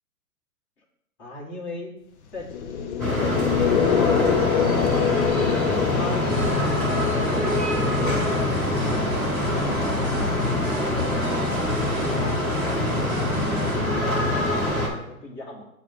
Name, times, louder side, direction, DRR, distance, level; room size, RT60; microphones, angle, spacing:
voice 1, 1.2-2.0 2.3-2.5 2.9-4.1 5.2-6.5 7.1-10.1 10.6-11.2 11.7-15.7, left 2 dB, 30° left, -1 dB, 1.4 m, -38 dB
sound 1, 2.4-10.5, left 7 dB, 55° left, 0.8 m, -26 dB
sound 2, 3.0-14.9, left 1 dB, 5° left, 0.4 m, -24 dB
sound 3, 6.3-13.8, right 3 dB, 30° right, 1.2 m, -37 dB
7.0 x 2.4 x 5.5 m, 0.81 s
hypercardioid pair, 125°, 42 cm